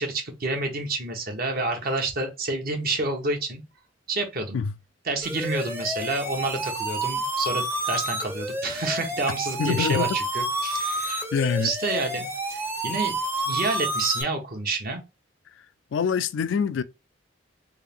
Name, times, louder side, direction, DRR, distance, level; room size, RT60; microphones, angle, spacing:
voice 1, 0.0-3.6 4.1-4.6 5.0-11.2 11.6-13.2 13.5-15.0, right 3 dB, 50° right, 1.0 m, -29 dB
sound 1, 5.2-14.2, right 1 dB, 15° right, 0.7 m, -29 dB
voice 2, 9.6-10.2 11.3-11.7 15.9-16.8, left 6 dB, 70° left, 0.3 m, -25 dB
3.5 x 2.5 x 3.5 m
head